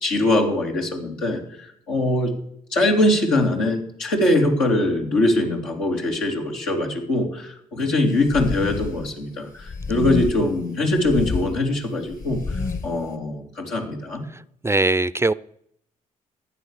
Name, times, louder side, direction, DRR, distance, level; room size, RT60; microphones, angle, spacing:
voice 1, 0.0-2.3 2.7-14.2, left 1 dB, 80° left, -1 dB, 3.0 m, -22 dB
sound 1, 8.2-9.0 9.6-10.5 10.9-11.5 12.1-12.9, left 4 dB, 50° left, 2.3 m, -29 dB
voice 2, 14.6-15.3, right 2 dB, 15° right, 19 dB, 0.5 m, -20 dB
15.0 x 9.7 x 6.5 m, 0.71 s
hypercardioid pair, 45°, 18 cm